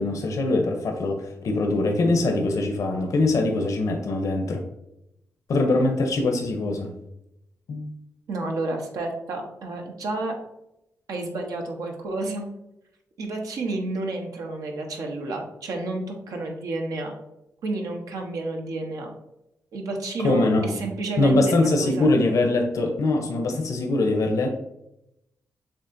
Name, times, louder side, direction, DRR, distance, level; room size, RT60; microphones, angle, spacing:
voice 1, 0.0-4.6 5.5-6.9 7.7-8.0 20.2-20.8 21.2-24.5, left 2 dB, 70° left, 3 dB, 0.7 m, -23 dB
voice 2, 8.3-10.3 11.1-12.5 13.2-17.1 17.6-19.1 19.7-22.1, right 2 dB, 85° right, 2 dB, 0.9 m, -30 dB
7.1 x 2.8 x 2.6 m, 0.86 s
cardioid pair, 95°, 6 cm